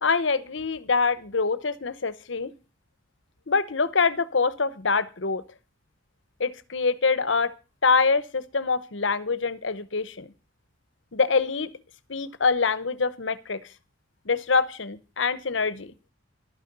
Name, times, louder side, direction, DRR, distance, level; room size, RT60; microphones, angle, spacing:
voice 1, 0.0-2.5 3.5-5.4 6.4-7.5 7.8-10.3 11.1-11.7 12.1-13.6 14.2-15.9, left 4 dB, 70° left, 16 dB, 1.0 m, -25 dB
12.5 x 9.5 x 6.7 m, 0.32 s
head